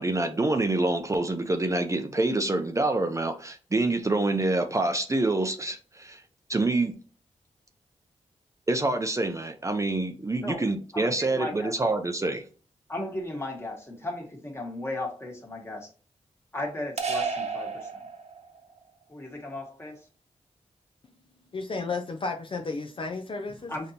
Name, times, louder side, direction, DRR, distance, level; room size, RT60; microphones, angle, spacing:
voice 1, 0.0-6.2 6.5-7.0 8.7-12.4, right 2 dB, 25° right, 0.5 m, -26 dB
voice 2, 10.9-11.7 12.9-15.9 16.5-18.1 19.1-20.1 23.7-23.9, left 1 dB, 20° left, 1.4 m, -36 dB
sound 1, 17.0-18.6, right 4 dB, 65° right, 0.9 m, -32 dB
voice 3, 21.5-23.7, left 3 dB, 45° left, 0.5 m, -33 dB
5.1 x 2.7 x 2.8 m
cardioid pair, 60°, 12 cm